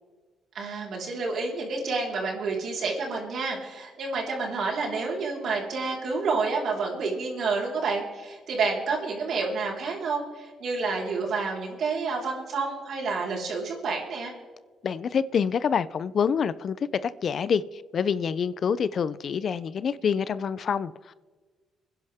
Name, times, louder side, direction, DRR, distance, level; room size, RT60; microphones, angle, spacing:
voice 1, 0.5-14.3, right 4 dB, 65° right, 4.5 m, -29 dB
voice 2, 14.8-21.1, left 7 dB, 55° left, 0.6 m, -27 dB
26.0 x 10.5 x 3.6 m
cardioid pair, 90°, 0 cm